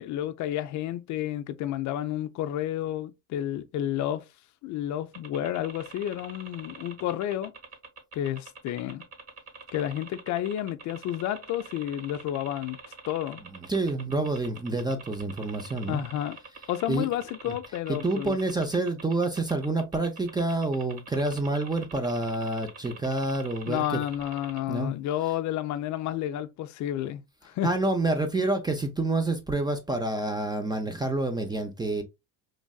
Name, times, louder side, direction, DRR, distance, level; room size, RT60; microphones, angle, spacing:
voice 1, 0.0-4.3 4.6-7.5 8.1-9.0 9.7-12.8 13.1-13.4 15.9-16.4 16.7-18.4 23.7-27.7, left 12 dB, 50° left, 0.4 m, -31 dB
sound 1, 5.1-24.6, right 4 dB, 35° right, 1.2 m, -45 dB
voice 2, 13.5-16.0 16.9-17.1 17.9-24.0 24.7-24.9 27.6-32.0, right 2 dB, 10° right, 0.4 m, -28 dB
3.2 x 2.5 x 2.2 m
supercardioid pair, 95°, 39 cm